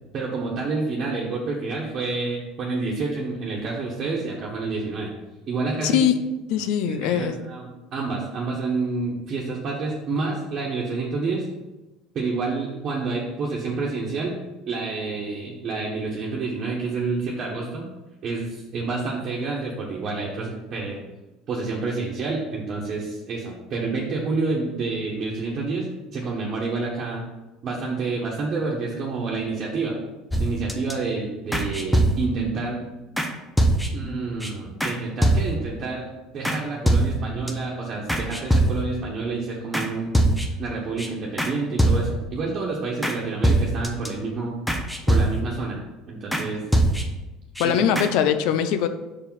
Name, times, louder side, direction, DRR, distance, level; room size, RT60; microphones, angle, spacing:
voice 1, 0.1-5.1 5.5-6.0 6.9-11.5 12.1-14.4 14.7-17.9 18.2-21.0 21.5-27.3 27.6-29.9 30.4-32.8 33.9-40.2 40.6-44.5 45.1-45.8 46.1-46.6 47.6-47.8, right 3 dB, 45° right, -4 dB, 1.3 m, -28 dB
voice 2, 5.8-6.1 6.5-7.4 47.6-48.9, left 9 dB, 70° left, 10 dB, 0.6 m, -21 dB
sound 1, 30.3-30.9 31.5-32.5 33.2-33.3 33.6-34.1 34.4-34.5 34.8-35.0 35.2-35.7 36.4-36.6 36.9-37.5 38.1-39.0 39.7-39.9 40.1-40.7 41.0-41.1 41.4-41.5 41.8-42.3 43.0-43.2 43.4-44.1 44.7-45.6 46.3-46.5 46.7-47.3 47.6-47.7 48.0-48.1, right 1 dB, 5° left, 0.9 m, -22 dB
5.0 x 4.8 x 5.7 m, 1.1 s
supercardioid pair, 95°, 0 cm